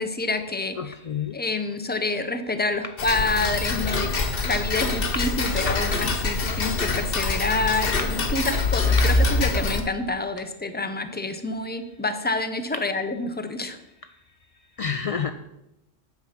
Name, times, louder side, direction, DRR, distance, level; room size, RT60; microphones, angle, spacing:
voice 1, 0.0-0.9 1.3-4.1 4.4-13.8, left 3 dB, 10° left, 8 dB, 0.6 m, -28 dB
voice 2, 0.8-1.4 14.8-15.3, left 6 dB, 65° left, 8 dB, 0.3 m, -28 dB
Tick-tock, 3.0-9.8, left 3 dB, 50° left, 1.3 m, -24 dB
9.4 x 7.5 x 5.8 m, 0.87 s
omnidirectional pair, 1.3 m